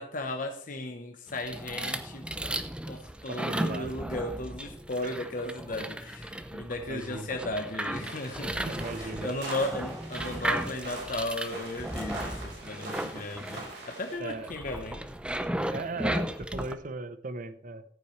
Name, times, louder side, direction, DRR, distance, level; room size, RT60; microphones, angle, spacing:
voice 1, 0.0-2.3 2.9-15.0, left 2 dB, 50° left, 4 dB, 1.0 m, -36 dB
sound 1, 1.3-16.7, right 1 dB, 5° right, 0.6 m, -35 dB
voice 2, 3.3-4.0 5.0-5.1 6.8-7.3 8.5-9.4 14.2-14.5 15.7-17.8, right 2 dB, 50° right, 12 dB, 0.8 m, -37 dB
sound 2, 7.9-14.1, right 2 dB, 70° right, 4.6 m, -43 dB
14.5 x 8.6 x 3.2 m, 0.62 s
head